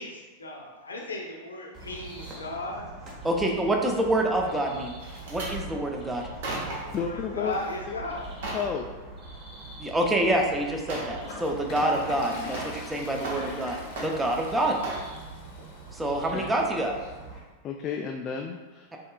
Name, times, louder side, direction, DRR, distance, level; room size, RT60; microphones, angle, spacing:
voice 1, 0.0-2.9 6.8-8.4, left 2 dB, 75° left, 0 dB, 0.8 m, -36 dB
sound 1, 1.7-17.4, right 2 dB, 30° right, 1.1 m, -43 dB
voice 2, 3.2-4.9 5.3-6.2 9.8-13.8 14.0-14.8 15.9-17.0, right 1 dB, 10° right, 1 dB, 0.6 m, -26 dB
sound 2, 5.0-5.6 6.2-7.0 7.5-7.8 8.1-8.7 10.1-10.2 10.9-11.2 11.5-12.9 13.2-13.7 14.0-14.4 14.8-15.1 15.6-15.8 16.1-16.2, right 2 dB, 55° right, 1.0 m, -36 dB
voice 3, 6.9-7.6 7.9-8.0 8.5-8.9 16.3-16.6 17.6-19.0, left 7 dB, 30° left, 3 dB, 0.3 m, -32 dB
Toilet flush, 11.2-16.3, left 2 dB, 50° left, 0.8 m, -43 dB
5.3 x 3.7 x 2.3 m, 1.2 s
figure-of-eight pair, 90°, 0 cm